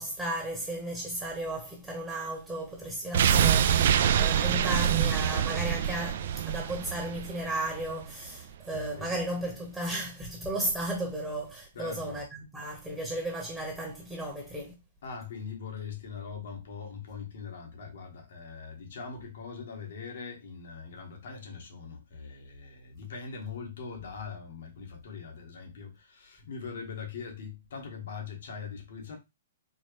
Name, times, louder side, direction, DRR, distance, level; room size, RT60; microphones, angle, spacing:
voice 1, 0.0-14.7, right 1 dB, 5° right, 1.0 m, -35 dB
sound 1, 3.1-8.1 8.4-8.5, right 9 dB, 60° right, 0.3 m, -25 dB
voice 2, 8.7-9.2 11.7-12.2 15.0-29.2, left 5 dB, 70° left, 1.4 m, -41 dB
4.4 x 2.2 x 3.2 m
hypercardioid pair, 150°, 0 cm